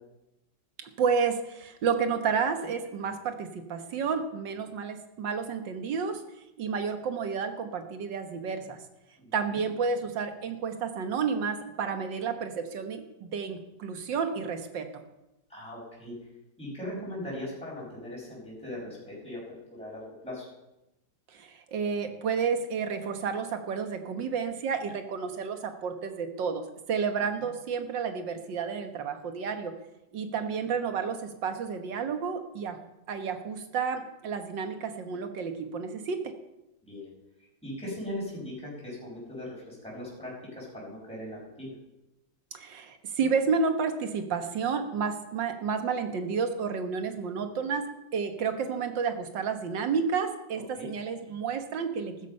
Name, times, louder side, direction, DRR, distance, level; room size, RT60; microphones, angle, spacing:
voice 1, 0.8-6.2 6.6-8.8 9.3-14.9 16.9-17.1 21.3-29.7 30.1-32.8 33.1-36.3 42.5-47.9 48.1-52.3, right 5 dB, 70° right, 7 dB, 2.0 m, -31 dB
voice 2, 9.2-9.6 15.5-16.1 16.6-19.4 19.7-20.5 27.4-27.5 36.8-37.1 37.6-41.7 50.7-50.9, left 1 dB, 5° left, -6 dB, 6.3 m, -39 dB
14.5 x 13.5 x 5.5 m, 0.92 s
omnidirectional pair, 2.1 m